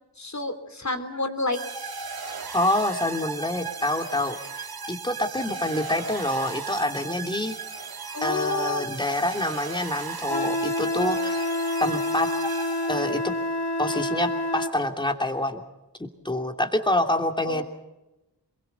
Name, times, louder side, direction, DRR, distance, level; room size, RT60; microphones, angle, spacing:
voice 1, 0.2-1.6 8.1-8.9 17.4-17.6, left 2 dB, 40° left, 9 dB, 3.2 m, -29 dB
sound 1, 1.5-13.3, right 5 dB, 60° right, 2.2 m, -36 dB
voice 2, 2.5-7.6 8.2-11.5 11.8-12.3 12.9-13.2 13.8-15.6 16.0-17.6, left 1 dB, 10° left, 4 dB, 2.8 m, -27 dB
Wind instrument woodwind instrument, 10.3-14.8, left 1 dB, 75° left, 2.1 m, -27 dB
27.5 x 22.0 x 5.6 m, 0.99 s
wide cardioid pair, 85°, 41 cm